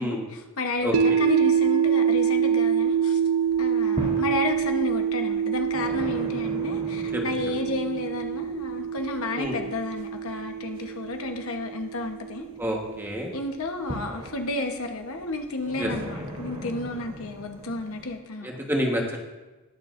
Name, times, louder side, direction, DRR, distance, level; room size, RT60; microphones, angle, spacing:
voice 1, 0.0-3.2 3.6-12.5 13.3-18.6, left 2 dB, 70° left, 4 dB, 1.0 m, -32 dB
sound 1, 0.8-2.9 3.3-18.2, equal, 35° right, 2.7 m, -40 dB
sound 2, 0.9-13.0, right 7 dB, 75° right, 0.5 m, -26 dB
voice 2, 12.6-13.3 15.8-15.9 18.4-19.2, equal, 10° right, 0 dB, 1.2 m, -28 dB
20.0 x 6.9 x 2.6 m, 1.2 s
head